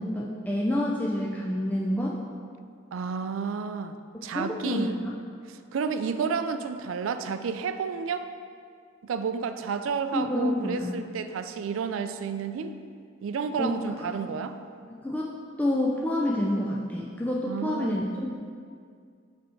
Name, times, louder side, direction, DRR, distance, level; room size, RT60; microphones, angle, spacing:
voice 1, 0.0-2.1 4.3-5.1 10.1-10.9 13.6-14.1 14.9-15.3 15.6-18.3, left 1 dB, 10° left, -3 dB, 0.3 m, -28 dB
voice 2, 2.9-3.9 4.2-5.0 5.7-8.3 9.0-12.7 13.2-14.6 17.5-18.0, right 5 dB, 85° right, 9 dB, 0.4 m, -31 dB
7.6 x 3.4 x 4.4 m, 2.2 s
head